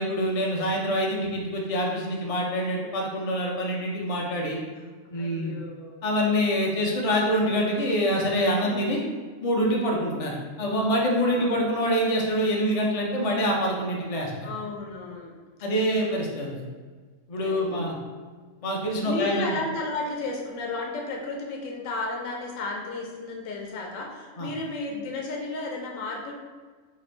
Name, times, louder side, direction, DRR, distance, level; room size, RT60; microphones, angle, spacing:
voice 1, 0.0-4.6 5.1-5.5 6.0-9.0 9.4-14.5 15.6-16.6 17.3-18.0 18.6-19.5 24.4-24.5, equal, 55° left, -1 dB, 0.4 m, -25 dB
voice 2, 5.2-5.9 8.6-8.9 9.7-10.1 11.2-11.5 14.4-15.3 15.9-16.4 17.4-18.0 19.0-26.3, left 3 dB, 75° left, 0 dB, 0.9 m, -33 dB
3.0 x 2.5 x 4.2 m, 1.5 s
omnidirectional pair, 1.4 m